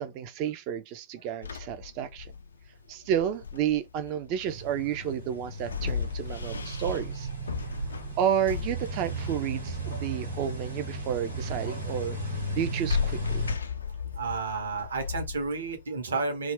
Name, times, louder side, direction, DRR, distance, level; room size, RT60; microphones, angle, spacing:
voice 1, 0.0-2.3 2.9-7.3 8.2-12.2 12.6-13.5, right 9 dB, 45° right, 0.3 m, -31 dB
sound 1, 1.4-15.8, left 7 dB, 75° left, 0.3 m, -37 dB
sound 2, 4.5-13.6, right 2 dB, 90° right, 1.0 m, -35 dB
voice 2, 14.2-16.5, right 4 dB, 70° right, 0.7 m, -31 dB
2.3 x 2.1 x 3.4 m
figure-of-eight pair, 90°, 0 cm